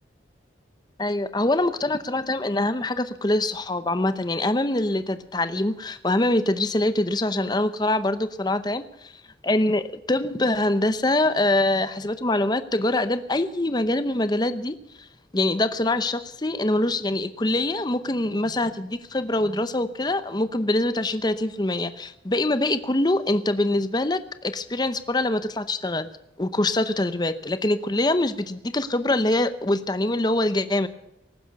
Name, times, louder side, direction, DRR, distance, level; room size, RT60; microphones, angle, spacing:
voice 1, 1.0-9.1 9.4-14.8 15.3-26.1 26.4-30.9, left 1 dB, 25° left, 12 dB, 0.8 m, -24 dB
18.5 x 10.0 x 6.8 m, 0.85 s
head